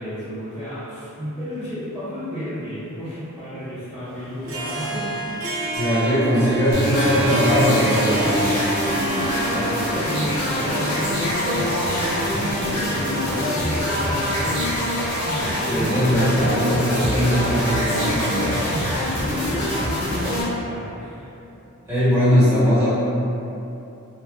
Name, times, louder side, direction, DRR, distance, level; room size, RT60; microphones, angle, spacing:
voice 1, 0.0-5.5 9.2-14.7 15.2-15.4 19.1-21.3, equal, 5° left, -18 dB, 0.6 m, -32 dB
Harp, 4.3-11.6, right 2 dB, 65° right, 0.4 m, -28 dB
voice 2, 5.7-8.6 15.6-18.7 21.9-22.9, equal, 10° right, -14 dB, 1.1 m, -20 dB
sound 1, 6.7-20.4, left 1 dB, 80° left, 0.8 m, -24 dB
3.1 x 2.3 x 2.3 m, 2.9 s
head